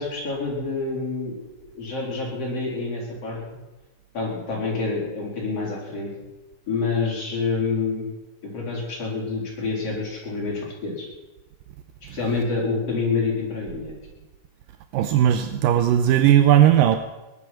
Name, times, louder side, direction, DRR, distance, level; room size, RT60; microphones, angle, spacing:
voice 1, 0.0-1.4 1.6-3.4 4.1-6.1 6.7-8.1 8.4-11.1 12.1-13.9, left 4 dB, 40° left, -4 dB, 5.4 m, -27 dB
voice 2, 14.9-17.0, right 11 dB, 80° right, 9 dB, 2.3 m, -17 dB
18.5 x 11.5 x 6.1 m, 1.1 s
omnidirectional pair, 4.1 m